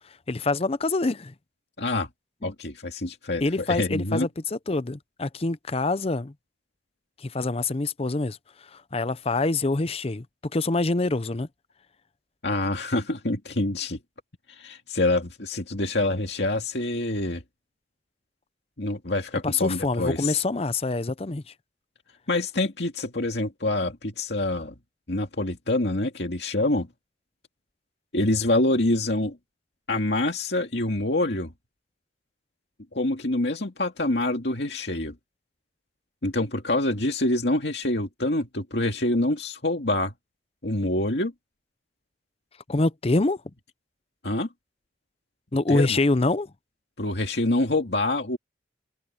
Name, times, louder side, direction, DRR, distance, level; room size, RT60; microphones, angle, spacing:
voice 1, 0.3-1.3 3.4-6.3 7.2-8.4 8.7-10.2 10.5-11.5 19.4-21.4 42.7-43.4 45.5-46.5, left 2 dB, 35° left, 0.7 m, -25 dB
voice 2, 1.8-2.1 2.4-4.3 12.4-14.0 14.5-17.4 18.8-20.4 22.3-24.7 25.1-26.9 28.1-29.4 29.9-31.5 32.9-35.1 36.2-40.1 40.6-41.3 44.2-44.5 45.7-46.0 47.0-48.4, left 2 dB, 65° left, 2.3 m, -26 dB
head